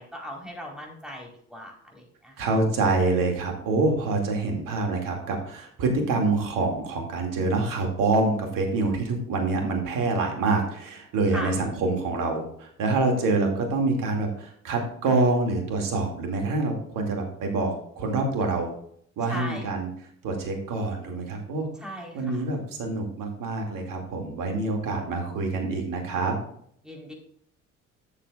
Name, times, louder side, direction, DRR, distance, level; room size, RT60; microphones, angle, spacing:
voice 1, 0.0-2.4 11.3-11.5 19.3-19.7 21.8-22.4 26.8-27.1, equal, ahead, -1 dB, 4.2 m, -38 dB
voice 2, 2.4-18.7 19.2-19.9 20.2-21.7 22.1-26.3, right 3 dB, 60° right, 3 dB, 2.5 m, -26 dB
13.0 x 7.4 x 2.5 m, 0.66 s
figure-of-eight pair, 50°, 37 cm